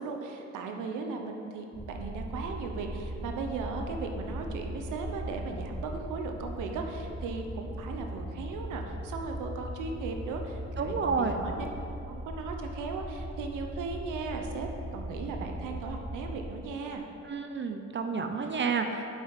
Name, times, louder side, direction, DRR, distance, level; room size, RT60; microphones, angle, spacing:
voice 1, 0.0-11.7 12.1-17.0 19.0-19.1, right 4 dB, 85° right, 3 dB, 0.9 m, -37 dB
sound 1, 1.7-16.5, equal, 10° right, 0.8 m, -39 dB
voice 2, 10.8-11.4 17.2-18.9, right 5 dB, 40° right, 6 dB, 0.6 m, -30 dB
8.0 x 5.3 x 4.8 m, 2.7 s
cardioid pair, 90°, 30 cm